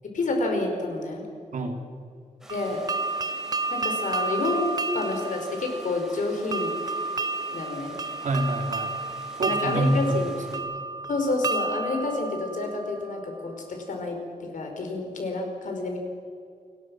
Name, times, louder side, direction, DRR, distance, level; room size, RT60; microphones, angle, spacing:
voice 1, 0.1-1.3 2.5-2.8 3.7-4.7 4.9-6.7 7.5-7.9 9.4-10.3 11.1-16.0, left 2 dB, 75° left, 3 dB, 4.7 m, -29 dB
voice 2, 1.5-1.9 8.2-9.0 9.4-10.2 10.5-10.7, right 1 dB, 70° right, 4 dB, 3.0 m, -26 dB
sound 1, 2.4-10.6, right 1 dB, 5° right, 4.3 m, -47 dB
sound 2, 2.5-13.3, right 3 dB, 30° right, 0.9 m, -31 dB
30.0 x 17.5 x 6.2 m, 2.3 s
wide cardioid pair, 175°, 13 cm